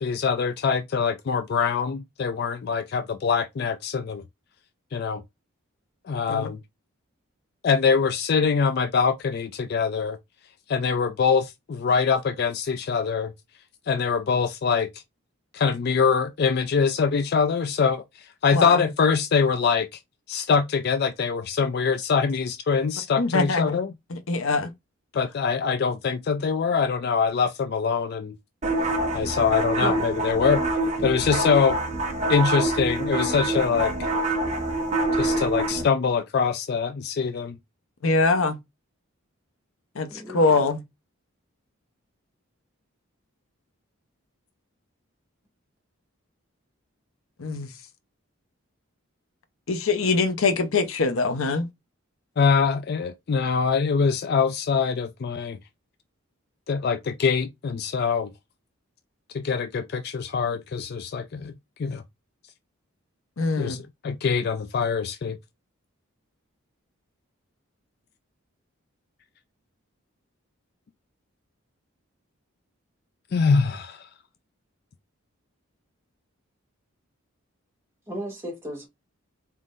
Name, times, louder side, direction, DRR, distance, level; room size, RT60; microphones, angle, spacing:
voice 1, 0.0-4.2 4.9-5.2 6.1-6.6 7.6-10.2 10.7-13.3 13.9-14.9 15.5-20.0 20.3-23.9 25.1-28.4 29.1-30.6 31.0-31.8 32.3-33.9 35.1-37.6 52.4-55.6 56.7-58.3 59.3-61.5 61.8-62.0 63.6-65.4 73.3-74.1, left 5 dB, 50° left, 0.3 m, -24 dB
voice 2, 18.5-18.8 23.2-23.7 24.1-24.7 38.0-38.6 40.0-40.8 47.4-47.7 49.7-51.7 63.4-63.8, left 3 dB, 75° left, 0.8 m, -23 dB
sound 1, 28.6-35.8, right 2 dB, 35° right, 1.1 m, -26 dB
voice 3, 31.4-31.7 40.1-40.7 78.1-78.9, equal, 10° right, 2.0 m, -35 dB
4.2 x 3.7 x 2.5 m
head